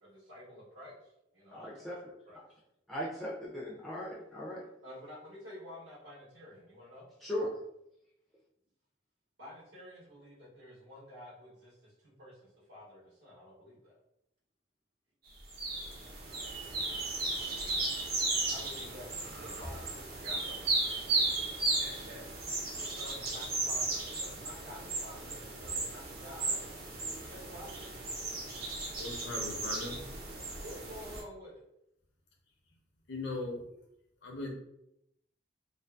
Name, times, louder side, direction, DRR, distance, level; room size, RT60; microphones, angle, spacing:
voice 1, 0.0-2.4 4.8-7.1 9.4-13.9 18.4-20.9 21.8-22.2 22.5-26.6 27.3-28.0 30.6-31.6, left 1 dB, 80° right, -7 dB, 0.9 m, -50 dB
voice 2, 1.5-2.1 2.9-4.7 7.2-7.5 17.6-17.7, equal, ahead, -6 dB, 0.4 m, -38 dB
sound 1, 15.5-31.2, right 3 dB, 55° right, 0.7 m, -35 dB
voice 3, 29.0-30.0 33.1-33.6 34.2-34.5, left 2 dB, 80° left, 0 dB, 0.7 m, -38 dB
2.5 x 2.3 x 2.2 m, 0.80 s
head